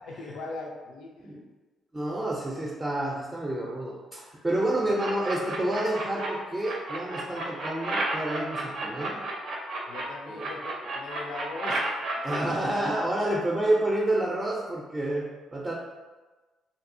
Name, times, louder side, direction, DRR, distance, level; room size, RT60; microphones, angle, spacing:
voice 1, 0.0-1.3 4.8-4.9 9.9-11.9 12.3-12.7, left 3 dB, 80° left, 1 dB, 0.4 m, -40 dB
voice 2, 1.9-9.2 10.3-10.5 12.2-15.7, right 1 dB, 20° right, -3 dB, 0.4 m, -29 dB
sound 1, 5.0-6.3 6.6-10.0 10.4-12.4, right 2 dB, 70° right, 0.5 m, -32 dB
2.7 x 2.6 x 2.5 m, 1.3 s
cardioid pair, 90°, 0 cm